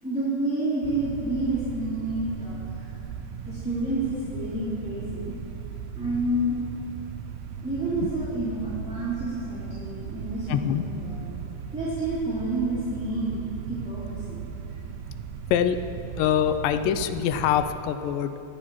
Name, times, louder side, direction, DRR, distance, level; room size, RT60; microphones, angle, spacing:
voice 1, 0.0-3.0 3.3-5.3 5.9-6.6 7.6-11.3 11.7-14.4, right 2 dB, ahead, -13 dB, 2.0 m, -29 dB
sound 1, 0.8-17.8, right 7 dB, 80° right, 1.7 m, -37 dB
voice 2, 10.5-10.8 15.5-15.8 16.2-18.4, left 9 dB, 80° left, 10 dB, 2.1 m, -24 dB
25.0 x 8.6 x 3.0 m, 2.9 s
omnidirectional pair, 4.0 m